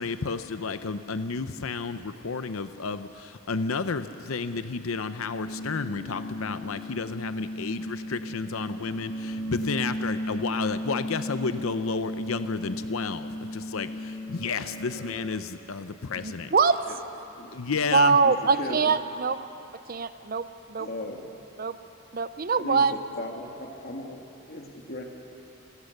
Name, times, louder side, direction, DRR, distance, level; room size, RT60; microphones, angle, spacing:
voice 1, 0.0-16.5 17.5-18.2, left 4 dB, 90° left, 11 dB, 0.7 m, -31 dB
sound 1, 5.2-15.2, equal, 65° left, 6.0 m, -35 dB
voice 2, 16.2-16.8 17.9-19.4 19.9-20.9 21.6-21.8 22.1-22.9, right 5 dB, 45° right, 12 dB, 0.6 m, -23 dB
voice 3, 17.4-17.8 18.2-19.0 20.8-21.3 22.6-25.0, left 1 dB, 50° left, 2 dB, 2.3 m, -38 dB
28.5 x 16.5 x 6.7 m, 2.8 s
head